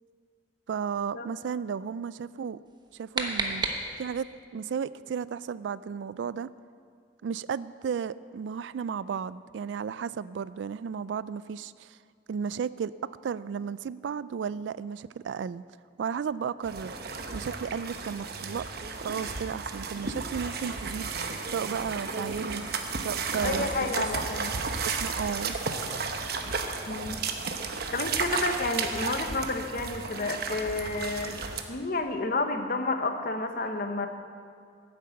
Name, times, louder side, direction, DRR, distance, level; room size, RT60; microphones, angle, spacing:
voice 1, 0.7-2.6 2.9-3.7 4.0-4.3 4.5-6.5 7.2-12.0 12.3-15.6 16.0-16.9 17.3-18.7 18.9-21.1 21.5-22.6 23.0-23.7 24.0-24.1 24.8-25.6, right 7 dB, 80° right, 18 dB, 0.3 m, -34 dB
sound 1, 2.7-4.3, right 3 dB, 25° right, 1.0 m, -33 dB
sound 2, 16.6-31.6, right 4 dB, 60° right, 0.9 m, -33 dB
voice 2, 23.4-24.5 26.9-27.2 27.9-31.4 31.7-34.1, left 3 dB, 50° left, 6 dB, 1.0 m, -30 dB
10.5 x 8.8 x 7.7 m, 2.2 s
head